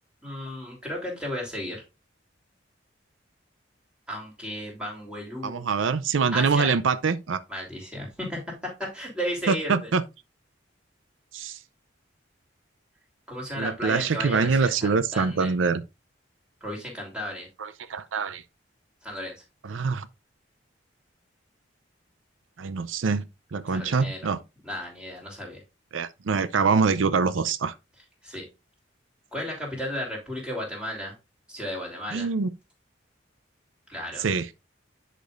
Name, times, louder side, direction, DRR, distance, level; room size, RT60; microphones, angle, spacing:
voice 1, 0.2-1.8 4.1-5.7 6.3-6.8 7.5-8.4 8.9-9.7 13.3-15.5 16.6-17.5 19.0-19.3 23.7-24.3 24.6-25.6 28.2-28.4 29.3-31.1 31.5-32.3 33.9-34.3, equal, 5° right, 3.2 m, -34 dB
voice 2, 5.4-7.4 9.5-10.0 11.3-11.6 13.6-15.8 17.6-18.4 19.6-20.1 22.6-24.4 25.9-27.7 32.1-32.5 34.2-34.5, right 5 dB, 85° right, 0.5 m, -25 dB
10.5 x 5.2 x 2.5 m
head